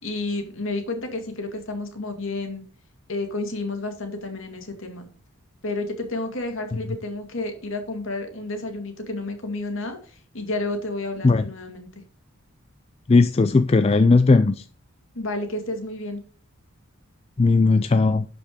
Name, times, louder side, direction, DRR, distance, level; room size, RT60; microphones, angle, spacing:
voice 1, 0.0-2.6 3.1-5.1 5.6-11.9 15.1-16.2, left 2 dB, 60° left, 2.3 m, -31 dB
voice 2, 13.1-14.6 17.4-18.3, left 3 dB, 25° left, 0.3 m, -17 dB
12.0 x 5.2 x 5.1 m
head